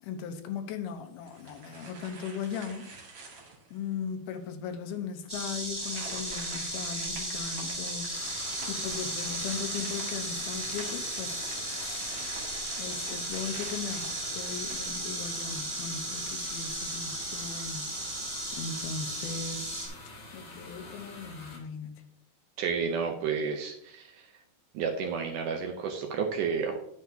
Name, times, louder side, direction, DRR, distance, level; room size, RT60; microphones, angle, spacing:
voice 1, 0.0-2.9 3.7-12.1 12.8-18.0 18.5-19.8 20.3-22.0, left 6 dB, 80° left, 6 dB, 2.8 m, -38 dB
sound 1, 1.2-3.8 4.3-4.4 5.7-15.5, right 3 dB, 50° right, 3.0 m, -47 dB
Insect, 5.3-19.9, right 1 dB, 10° right, 2.0 m, -35 dB
sound 2, 8.1-21.6, left 2 dB, 45° left, 3.2 m, -46 dB
voice 2, 22.6-24.3 24.7-26.8, right 6 dB, 75° right, 3 dB, 2.0 m, -31 dB
9.9 x 9.3 x 2.8 m, 0.73 s
omnidirectional pair, 4.5 m